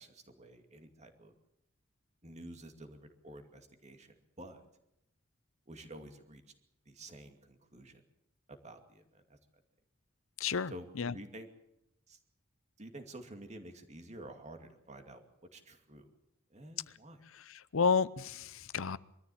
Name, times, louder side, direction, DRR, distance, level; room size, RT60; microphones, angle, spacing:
voice 1, 0.0-1.3 2.2-4.7 5.7-6.4 6.9-8.0 8.5-9.4 10.7-10.9 11.1-11.5 12.1-12.2 12.8-15.2 15.5-16.1 16.5-17.2, right 1 dB, 30° right, 6 dB, 2.4 m, -50 dB
voice 2, 10.4-10.7 11.0-11.1 17.7-19.0, left 5 dB, 65° left, 18 dB, 0.7 m, -30 dB
23.0 x 14.0 x 8.6 m, 0.83 s
head